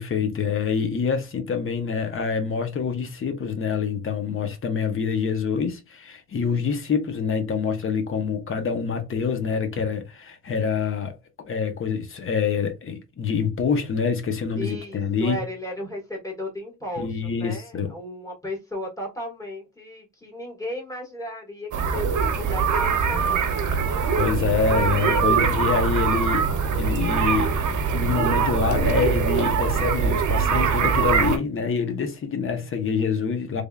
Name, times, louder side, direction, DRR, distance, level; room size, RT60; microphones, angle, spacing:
voice 1, 0.0-11.1 11.5-15.4 17.0-17.9 24.2-27.5 27.9-33.6, left 6 dB, 45° left, 1.0 m, -26 dB
voice 2, 14.6-23.6 32.4-32.7, left 1 dB, 10° left, 1.8 m, -35 dB
sound 1, 21.7-31.4, right 6 dB, 75° right, 1.0 m, -22 dB
3.5 x 3.5 x 2.4 m
wide cardioid pair, 150°, 31 cm